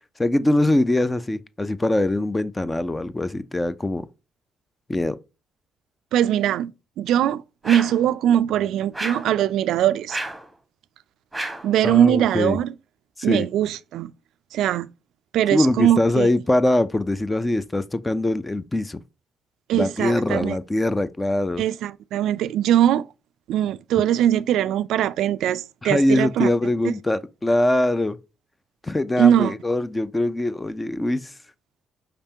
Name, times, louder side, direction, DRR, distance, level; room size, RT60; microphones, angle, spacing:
voice 1, 0.2-4.1 4.9-5.2 11.8-12.6 13.2-13.5 15.5-19.0 19.7-21.6 25.8-28.2 28.8-31.3, left 1 dB, 15° left, 0.4 m, -22 dB
voice 2, 6.1-6.7 7.0-10.2 11.6-12.7 13.2-14.1 14.5-14.9 15.3-16.3 19.7-20.6 21.6-23.1 23.5-26.5 26.8-26.9 29.2-29.5, right 11 dB, 85° right, 0.3 m, -21 dB
sound 1, 7.6-8.1 8.9-9.3 10.1-10.5 11.3-11.7, right 2 dB, 10° right, 1.2 m, -31 dB
5.0 x 3.4 x 2.8 m
cardioid pair, 90°, 0 cm